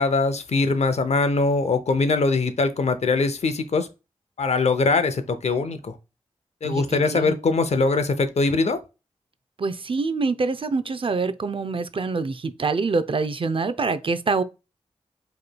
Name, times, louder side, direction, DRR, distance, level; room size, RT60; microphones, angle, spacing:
voice 1, 0.0-3.9 4.4-5.9 6.6-8.8, left 3 dB, 65° left, 0.6 m, -22 dB
voice 2, 6.6-7.4 9.6-14.4, right 4 dB, 50° right, 0.5 m, -25 dB
4.9 x 3.1 x 2.2 m
cardioid pair, 40°, 12 cm